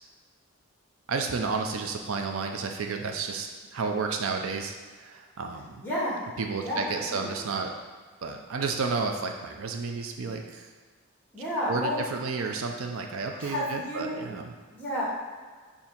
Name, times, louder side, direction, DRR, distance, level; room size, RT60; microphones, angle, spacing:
voice 1, 1.1-4.7 5.0-5.8 6.4-7.7 8.2-10.7 11.7-14.5, right 4 dB, 70° right, 4 dB, 0.5 m, -31 dB
voice 2, 5.8-6.2 6.6-6.8 7.1-7.4 11.3-12.0 13.4-14.2 14.7-15.0, equal, 10° left, -7 dB, 1.9 m, -31 dB
6.9 x 2.8 x 5.7 m, 1.5 s
head